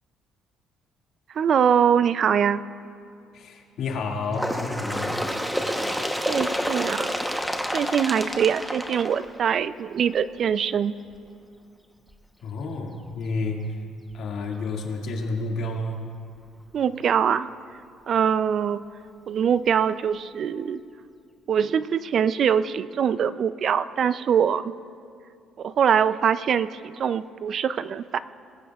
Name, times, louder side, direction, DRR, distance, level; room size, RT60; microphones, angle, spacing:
voice 1, 1.4-2.6 6.3-7.1 7.7-10.9 16.7-17.5 18.1-18.8 19.3-20.8 21.5-24.7 25.6-28.2, right 8 dB, 50° right, 14 dB, 0.4 m, -23 dB
voice 2, 3.3-5.2 12.4-13.8 14.1-16.0, left 3 dB, 65° left, 0 dB, 2.0 m, -30 dB
Bird, 4.3-9.8 10.7-10.8 11.1-11.2 12.1-12.2 13.1-13.2 14.1-14.2, equal, ahead, 0.9 m, -29 dB
21.5 x 15.5 x 2.4 m, 2.4 s
cardioid pair, 115°, 0 cm